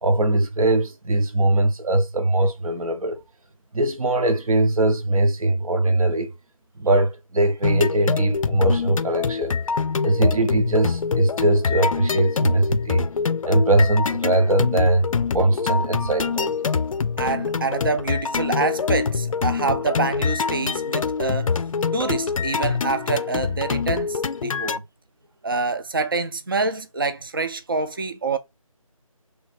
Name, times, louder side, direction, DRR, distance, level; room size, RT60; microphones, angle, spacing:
voice 1, 0.0-3.2 3.7-6.3 6.8-9.5 10.0-13.1 13.4-15.1 15.3-16.6, right 2 dB, 75° right, 0.8 m, -21 dB
sound 1, 7.6-24.8, left 5 dB, 65° left, 0.4 m, -25 dB
voice 2, 17.2-21.5 21.9-24.8 25.4-28.4, right 3 dB, 40° right, 0.4 m, -26 dB
3.2 x 2.4 x 4.2 m
figure-of-eight pair, 170°, 18 cm